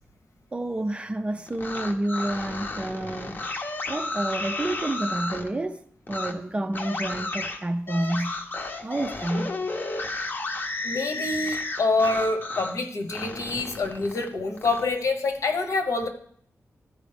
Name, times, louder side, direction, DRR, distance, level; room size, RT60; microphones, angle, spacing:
voice 1, 0.5-5.8 6.1-8.3 8.8-9.5, right 1 dB, 20° right, 0.4 m, -29 dB
sound 1, 1.5-5.5 6.1-6.3 6.7-12.8 13.1-14.8, left 2 dB, 40° left, 0.7 m, -32 dB
voice 2, 10.8-16.1, left 3 dB, 70° left, 1.1 m, -26 dB
13.5 x 5.1 x 3.4 m
wide cardioid pair, 180°, 5 cm